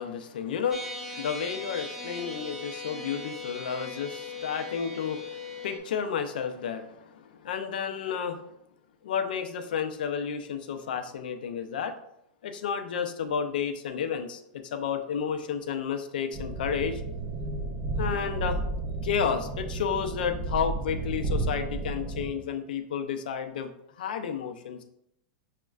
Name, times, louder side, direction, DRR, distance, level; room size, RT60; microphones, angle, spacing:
voice 1, 0.0-8.5 9.0-11.9 12.4-17.0 18.0-18.6 19.0-23.7 24.0-24.8, left 7 dB, 85° left, 7 dB, 0.5 m, -31 dB
sound 1, 0.7-5.8, left 3 dB, 5° right, 0.4 m, -39 dB
sound 2, 16.3-22.3, right 2 dB, 30° right, 0.7 m, -32 dB
6.1 x 2.1 x 2.3 m, 0.76 s
supercardioid pair, 155°, 5 cm